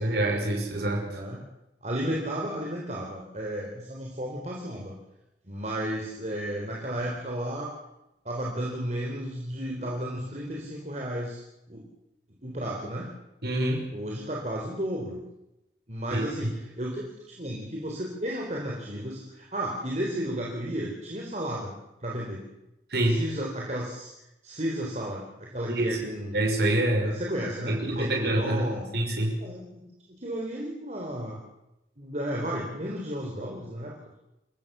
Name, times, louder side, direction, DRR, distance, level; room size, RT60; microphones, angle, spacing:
voice 1, 0.0-1.2 13.4-13.9 16.1-16.5 22.9-23.2 25.7-26.0 26.3-27.2 27.7-29.4, right 1 dB, 60° right, 1 dB, 5.8 m, -26 dB
voice 2, 1.1-1.4 1.8-4.9 5.4-7.7 8.2-11.4 11.7-11.8 12.4-13.1 13.9-15.2 15.9-21.7 22.0-22.4 23.0-24.1 24.4-26.4 27.0-28.9 29.4-29.8 30.2-31.4 32.0-33.9, right 1 dB, 40° right, -2 dB, 4.2 m, -33 dB
28.0 x 16.0 x 7.1 m, 0.91 s
head